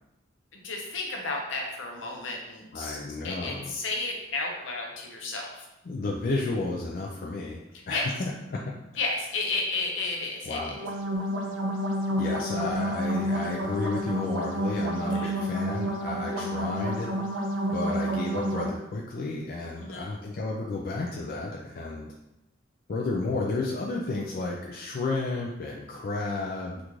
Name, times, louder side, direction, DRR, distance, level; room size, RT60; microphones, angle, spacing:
voice 1, 0.5-5.7 7.9-8.1 9.0-10.7 15.1-15.3 19.8-20.1, left 3 dB, 80° left, 0 dB, 0.7 m, -32 dB
voice 2, 2.7-3.7 5.9-8.7 10.5-10.8 12.2-17.1 17.7-22.1 22.9-26.8, left 3 dB, 50° left, -2 dB, 0.4 m, -32 dB
sound 1, 10.7-18.7, equal, 85° right, 0.5 m, -29 dB
3.6 x 2.5 x 3.0 m, 0.90 s
head